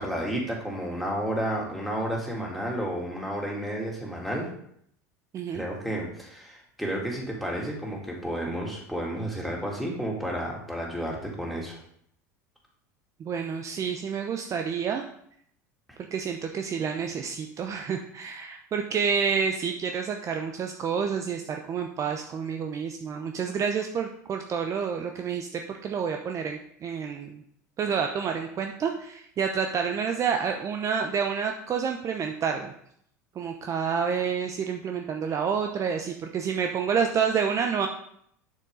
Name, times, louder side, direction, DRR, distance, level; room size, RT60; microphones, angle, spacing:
voice 1, 0.0-4.5 5.5-11.8, right 1 dB, ahead, -3 dB, 3.0 m, -31 dB
voice 2, 13.2-15.0 16.1-27.4 27.8-32.7 33.3-37.9, right 6 dB, 35° right, 4 dB, 0.8 m, -29 dB
7.2 x 6.7 x 3.9 m, 0.68 s
hypercardioid pair, 85°, 9 cm